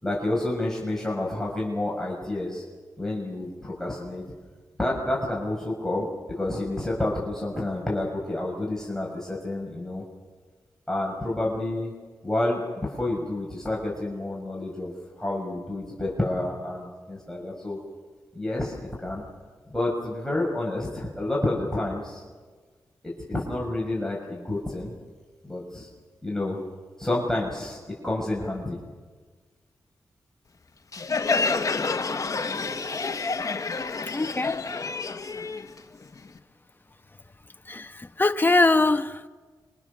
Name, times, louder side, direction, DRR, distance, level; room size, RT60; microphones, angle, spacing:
voice 1, 0.0-2.6 3.0-4.2 4.8-10.0 10.9-11.9 12.2-17.8 18.3-19.2 19.7-22.2 23.0-24.9 25.4-25.9 26.2-26.6 27.0-27.8 28.0-28.8, left 1 dB, 5° left, 6.4 m, -29 dB
Crowd, 30.9-36.4, left 4 dB, 45° left, 1.6 m, -28 dB
voice 2, 34.1-34.6 37.7-39.3, left 2 dB, 25° left, 1.4 m, -22 dB
27.5 x 25.0 x 6.9 m
cardioid pair, 65°, 8 cm